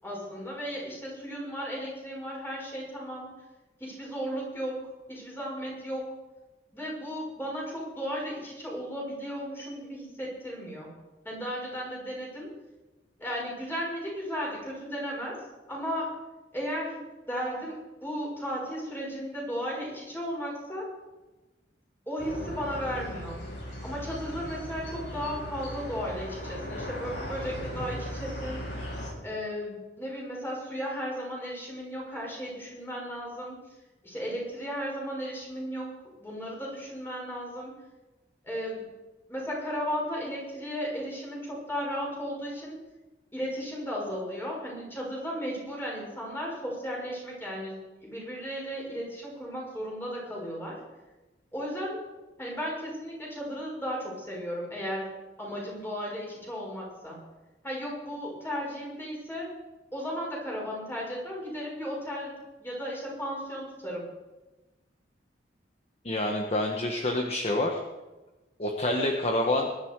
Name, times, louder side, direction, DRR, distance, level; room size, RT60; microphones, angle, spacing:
voice 1, 0.0-3.3 3.8-4.8 5.1-6.0 6.7-10.9 11.2-12.5 13.2-15.4 15.7-16.1 16.5-17.0 17.3-20.9 22.1-23.4 23.8-28.6 29.2-33.6 34.0-35.9 36.2-37.7 38.4-38.9 39.3-42.8 43.3-50.8 51.5-52.0 52.4-55.1 55.4-57.2 57.6-59.5 59.9-62.3 62.6-64.1, equal, 15° left, -3 dB, 6.2 m, -35 dB
sound 1, 22.2-29.1, equal, 80° left, 6.8 m, -37 dB
voice 2, 66.0-67.8 68.6-69.7, left 1 dB, 35° left, 2 dB, 1.4 m, -27 dB
21.5 x 12.0 x 4.8 m, 1.1 s
head